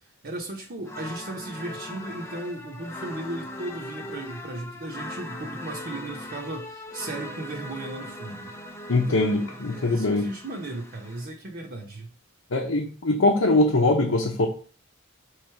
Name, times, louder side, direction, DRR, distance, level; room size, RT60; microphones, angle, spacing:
voice 1, 0.2-8.5 8.9-12.1, right 2 dB, 50° right, 0 dB, 1.0 m, -36 dB
sound 1, 0.8-11.3, left 1 dB, 15° left, 0.6 m, -40 dB
voice 2, 8.9-10.3 12.5-14.5, left 2 dB, 80° left, 0 dB, 0.9 m, -22 dB
6.5 x 3.3 x 4.6 m, 0.39 s
head